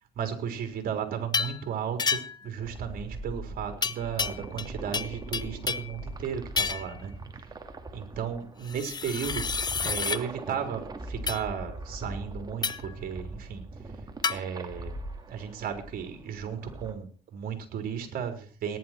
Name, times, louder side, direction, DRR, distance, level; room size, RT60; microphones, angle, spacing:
voice 1, 0.2-7.1 7.9-9.4 9.8-13.6 14.3-14.9 15.3-18.8, right 7 dB, 60° right, 5 dB, 4.0 m, -34 dB
sound 1, 1.3-1.6 2.0-2.5 3.8-4.7 4.9-6.0 6.6-6.9 8.7-10.2 11.3-11.5 12.6-12.9 14.2-14.4, left 5 dB, 25° left, 0.7 m, -30 dB
sound 2, 2.6-16.9, right 2 dB, 25° right, 2.1 m, -41 dB
18.5 x 10.5 x 4.6 m, 0.41 s
cardioid pair, 110°, 17 cm